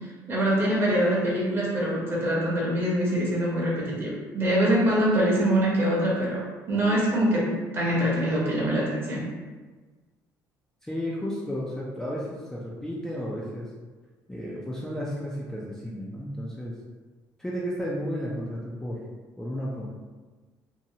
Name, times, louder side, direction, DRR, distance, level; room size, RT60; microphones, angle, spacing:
voice 1, 0.3-9.2, right 1 dB, 30° right, -5 dB, 0.9 m, -24 dB
voice 2, 10.8-13.7 14.3-16.7 17.4-19.0 19.4-19.8, equal, 5° left, -6 dB, 0.3 m, -33 dB
2.7 x 2.2 x 2.7 m, 1.3 s
cardioid pair, 130°, 7 cm